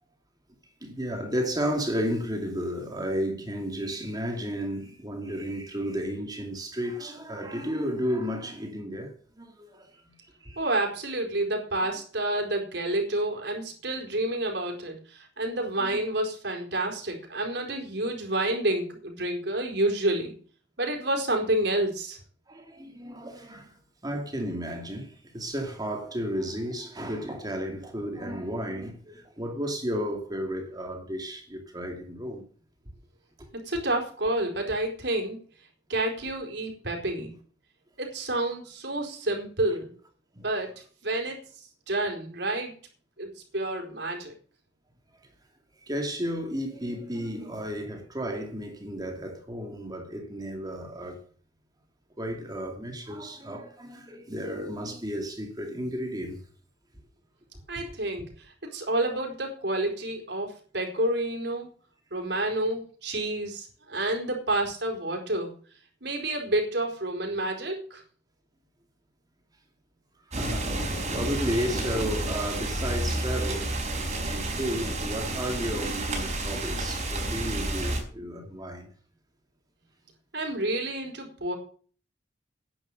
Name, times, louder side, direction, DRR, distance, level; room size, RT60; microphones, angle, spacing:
voice 1, 0.8-10.1 10.4-10.6 15.8-15.9 22.5-23.7 24.0-32.4 33.4-33.5 40.3-40.5 45.9-51.2 52.2-56.4 70.3-73.8 74.2-78.9, equal, 20° right, 2.6 m, -33 dB
voice 2, 10.6-20.3 20.8-22.2 33.6-35.4 35.9-37.3 38.0-39.9 40.4-40.7 41.0-41.4 41.9-42.7 43.2-44.3 57.7-58.5 58.7-61.7 62.1-65.5 66.0-68.0 80.3-81.5, right 1 dB, 70° right, 4.5 m, -29 dB
sound 1, 70.3-78.0, right 1 dB, 40° right, 4.7 m, -30 dB
11.0 x 10.0 x 6.7 m
head